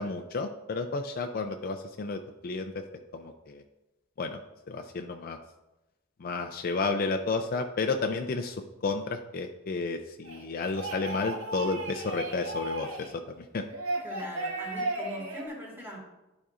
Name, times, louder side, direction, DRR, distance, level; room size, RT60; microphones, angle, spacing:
voice 1, 0.0-2.8 3.1-3.6 4.2-4.4 4.7-5.4 6.2-13.7, left 3 dB, 45° left, 5 dB, 0.4 m, -32 dB
sound 1, 10.2-13.1 13.7-15.4, right 2 dB, 90° right, 1.5 m, -35 dB
voice 2, 14.0-16.0, equal, 10° right, -4 dB, 2.1 m, -41 dB
11.0 x 5.2 x 2.5 m, 1.0 s
head